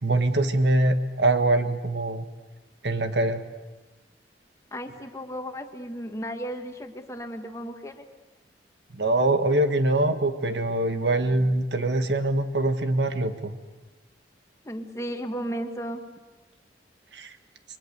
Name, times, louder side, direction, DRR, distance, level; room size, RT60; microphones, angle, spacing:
voice 1, 0.0-2.3 2.8-3.4 8.9-13.5 17.1-17.3, right 2 dB, 75° right, 8 dB, 1.5 m, -23 dB
voice 2, 4.7-8.0 14.6-16.0, equal, 15° left, 5 dB, 1.6 m, -34 dB
29.5 x 23.0 x 6.8 m, 1.2 s
head